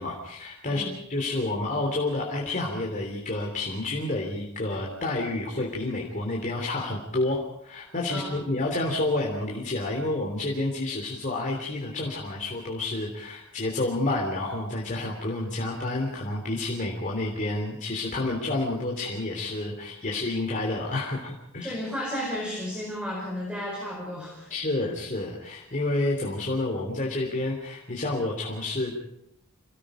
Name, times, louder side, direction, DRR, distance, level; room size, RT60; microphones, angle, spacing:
voice 1, 0.0-0.8 1.1-21.7 24.5-28.9, left 2 dB, 35° left, -1 dB, 3.4 m, -29 dB
voice 2, 21.6-24.5, left 1 dB, 5° right, -2 dB, 5.1 m, -33 dB
27.5 x 19.0 x 5.2 m, 0.80 s
head